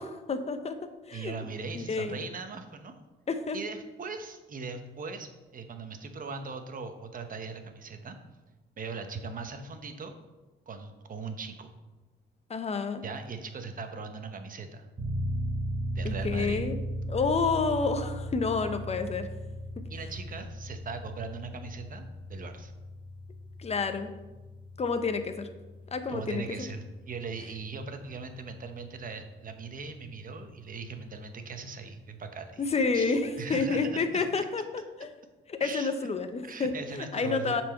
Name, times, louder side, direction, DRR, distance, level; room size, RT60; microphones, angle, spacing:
voice 1, 0.0-1.3 1.7-2.1 3.3-3.6 12.5-13.0 16.0-16.8 17.1-19.3 19.8-19.9 23.6-24.1 24.8-25.5 25.9-26.4 32.6-34.6 35.0-35.1 35.5-37.6, left 4 dB, 30° left, 8 dB, 0.8 m, -29 dB
voice 2, 1.1-2.9 3.5-8.2 8.8-10.1 10.7-11.7 13.0-14.9 15.9-16.6 19.9-22.0 22.3-22.7 26.1-32.6 32.9-34.4 35.6-36.1 36.4-37.6, right 4 dB, 45° right, 7 dB, 1.0 m, -39 dB
sound 1, 15.0-29.4, equal, 25° right, 1.3 m, -37 dB
7.4 x 4.5 x 5.8 m, 1.2 s
cardioid pair, 90°, 20 cm